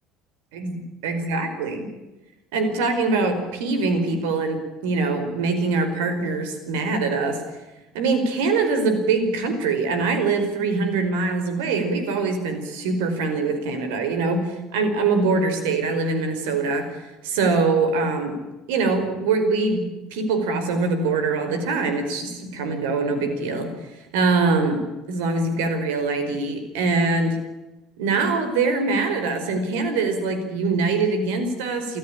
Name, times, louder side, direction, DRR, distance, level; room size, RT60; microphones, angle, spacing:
voice 1, 0.5-1.9 2.5-7.4 7.9-18.4 18.7-24.8 25.1-27.4 28.0-32.0, right 3 dB, 70° right, 8 dB, 4.9 m, -23 dB
27.5 x 15.0 x 8.8 m, 1.1 s
hypercardioid pair, 65°, 0 cm